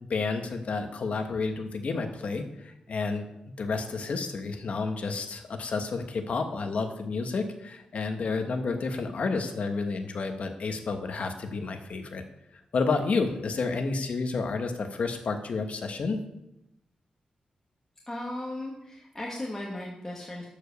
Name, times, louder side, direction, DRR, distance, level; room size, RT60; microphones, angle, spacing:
voice 1, 0.1-3.3 3.6-12.2 12.7-16.2, left 4 dB, 60° left, 6 dB, 1.2 m, -30 dB
voice 2, 18.1-20.5, left 1 dB, 20° left, -4 dB, 1.7 m, -36 dB
11.5 x 5.1 x 6.8 m, 0.87 s
wide cardioid pair, 155°, 3 cm